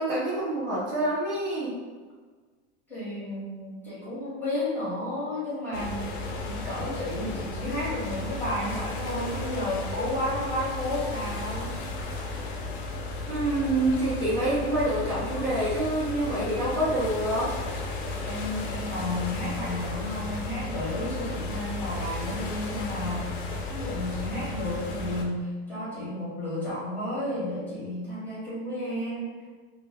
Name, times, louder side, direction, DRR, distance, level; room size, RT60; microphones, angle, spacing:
voice 1, 0.0-1.8 13.3-17.5, right 1 dB, 40° right, -8 dB, 0.6 m, -27 dB
voice 2, 2.9-6.2 6.4-11.7 18.2-29.4, left 1 dB, 5° left, -11 dB, 0.8 m, -32 dB
sound 1, 5.7-25.3, left 3 dB, 55° left, 0.5 m, -34 dB
2.2 x 2.1 x 3.3 m, 1.4 s
supercardioid pair, 175°, 31 cm